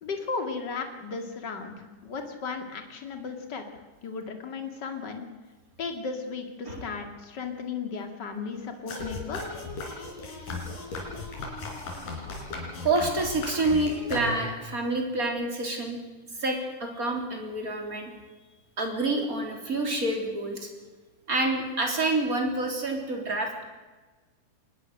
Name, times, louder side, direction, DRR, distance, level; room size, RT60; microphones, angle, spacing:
voice 1, 0.0-3.7 4.0-5.2 5.8-9.4, left 4 dB, 35° left, 5 dB, 2.5 m, -35 dB
sound 1, 8.9-14.7, left 3 dB, 85° left, 5.8 m, -36 dB
voice 2, 12.8-16.0 16.4-18.1 18.8-20.7 21.3-23.6, right 2 dB, 25° right, 2 dB, 3.7 m, -28 dB
24.0 x 20.0 x 6.6 m, 1.3 s
omnidirectional pair, 3.7 m